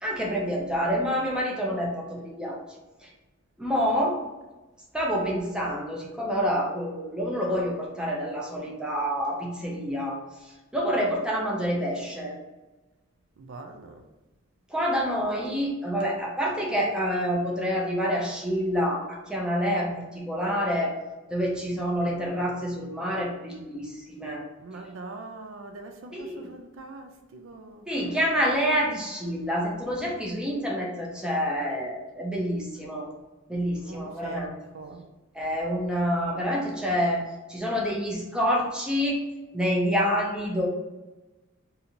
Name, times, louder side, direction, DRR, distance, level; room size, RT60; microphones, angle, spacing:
voice 1, 0.0-2.6 3.0-3.1 3.6-4.2 4.9-10.2 10.7-12.4 14.7-20.9 21.3-24.5 26.1-26.5 27.9-33.1 33.5-34.5 35.3-37.2 37.5-39.2 39.5-40.7, equal, 5° right, 0.6 m, -27 dB
voice 2, 13.4-14.0 24.6-27.9 33.8-34.5 34.7-35.1, right 3 dB, 70° right, 0.4 m, -42 dB
2.7 x 2.6 x 4.3 m
head